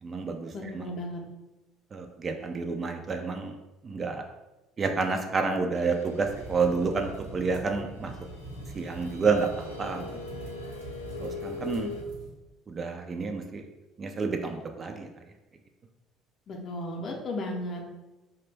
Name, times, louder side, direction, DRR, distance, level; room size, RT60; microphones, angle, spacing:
voice 1, 0.0-0.9 1.9-3.6 3.8-4.3 4.8-8.1 8.7-10.4 11.2-11.9 12.7-13.6 14.0-15.1, right 4 dB, 35° right, 4 dB, 0.3 m, -29 dB
voice 2, 0.5-1.2 16.5-17.8, left 1 dB, 45° left, 1 dB, 0.6 m, -35 dB
sound 1, 5.7-12.0, left 4 dB, 90° left, 0.3 m, -42 dB
sound 2, 6.2-12.3, right 3 dB, 80° right, 0.9 m, -44 dB
2.4 x 2.2 x 3.3 m, 1.1 s
figure-of-eight pair, 55°, 0 cm